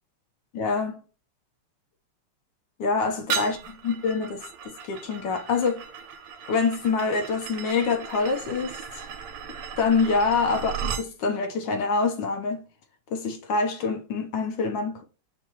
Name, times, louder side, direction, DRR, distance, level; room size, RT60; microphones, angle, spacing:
voice 1, 0.5-0.9 2.8-3.6 3.8-5.8 6.5-8.7 9.8-12.6 13.1-15.0, left 4 dB, 65° left, 1.3 m, -25 dB
sound 1, 3.3-11.1, right 6 dB, 90° right, 1.6 m, -36 dB
6.0 x 2.3 x 2.9 m
omnidirectional pair, 2.4 m